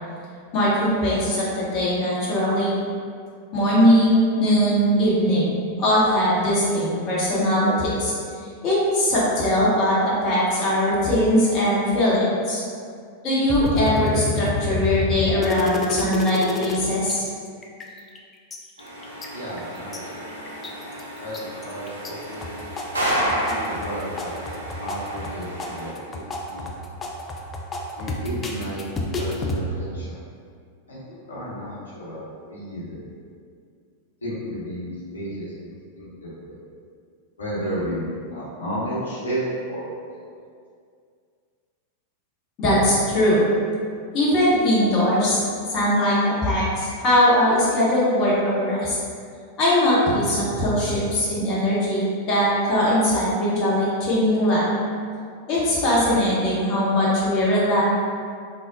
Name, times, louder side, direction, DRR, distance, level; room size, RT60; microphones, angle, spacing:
voice 1, 0.5-2.7 3.5-8.1 8.6-12.6 13.2-17.2 42.6-43.4 44.1-45.4 45.7-49.0 49.6-52.0 52.3-54.6 55.5-57.8, equal, 35° left, -8 dB, 0.8 m, -20 dB
sound 1, 13.5-16.8 17.1-17.2 17.5-18.2 18.5-20.0 20.5-21.0 21.3-22.1 22.4-29.6, left 2 dB, 20° left, 0.3 m, -29 dB
sound 2, 18.8-25.9, equal, 75° right, 0.5 m, -31 dB
voice 2, 19.3-20.2 21.2-22.6 23.4-26.7 28.0-30.2 30.9-33.0 34.2-36.5 37.4-39.4 39.7-40.2, equal, 75° left, -9 dB, 0.9 m, -33 dB
3.4 x 2.1 x 2.5 m, 2.2 s
figure-of-eight pair, 90°, 0 cm